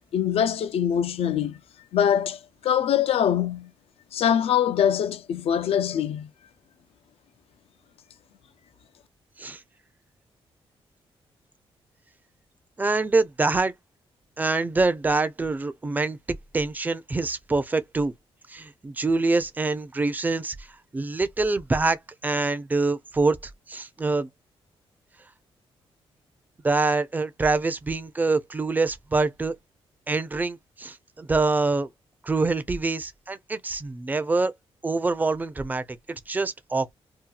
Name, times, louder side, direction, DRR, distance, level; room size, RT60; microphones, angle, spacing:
voice 1, 0.1-1.6 1.9-3.7 4.1-6.3, left 9 dB, 70° left, 0.4 m, -23 dB
voice 2, 12.8-13.7 14.4-16.2 16.5-18.1 18.5-20.7 20.9-24.3 26.6-29.5 30.1-31.9 32.2-34.5 34.8-36.9, right 3 dB, 15° right, 0.4 m, -25 dB
2.7 x 2.3 x 2.2 m
cardioid pair, 130°, 10 cm